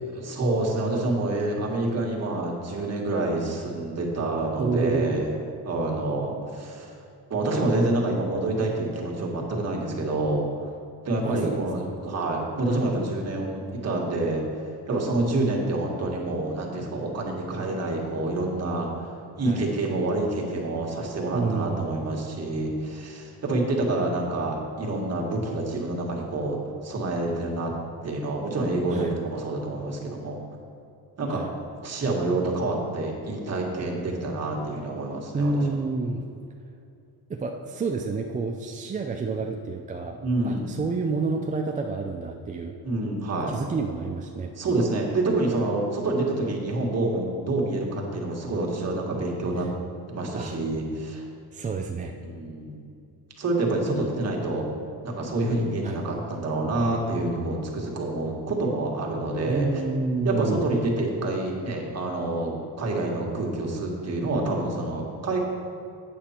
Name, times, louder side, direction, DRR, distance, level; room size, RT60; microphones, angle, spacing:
voice 1, 0.0-5.3 5.6-6.9 7.3-10.4 11.0-14.4 14.9-27.7 28.0-30.4 31.2-31.5 31.8-35.6 40.2-40.7 42.8-43.5 44.5-49.7 50.1-51.2 52.2-52.8 53.4-54.6 55.0-59.7 60.2-65.4, right 2 dB, 35° right, -1 dB, 1.7 m, -27 dB
voice 2, 4.6-5.3 11.2-11.9 19.4-19.6 21.3-21.9 28.9-29.1 31.3-31.5 35.3-36.2 37.3-42.7 43.5-44.5 50.3-50.6 51.5-52.1 55.8-56.0 59.5-60.6, right 4 dB, 20° right, 2 dB, 0.3 m, -29 dB
8.6 x 7.0 x 4.4 m, 2.5 s
cardioid pair, 125°, 42 cm